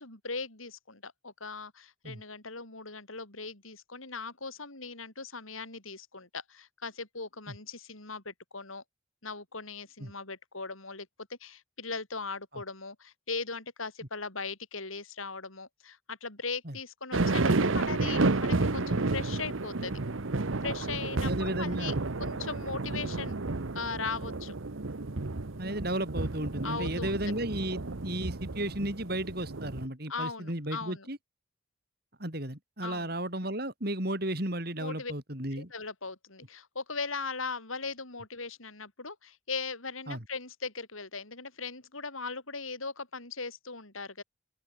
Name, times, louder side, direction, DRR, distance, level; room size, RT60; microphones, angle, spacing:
voice 1, 0.0-8.8 9.2-20.0 20.6-23.3 23.7-24.5 25.9-26.1 26.6-27.2 30.1-31.1 32.8-33.1 34.8-35.1 35.5-44.2, left 4 dB, 90° left, 6.1 m, -39 dB
sound 1, 17.1-29.9, right 3 dB, 80° right, 1.1 m, -31 dB
voice 2, 21.2-21.9 25.6-31.2 32.2-35.7 40.1-40.2, right 1 dB, 50° right, 4.9 m, -34 dB
open air
head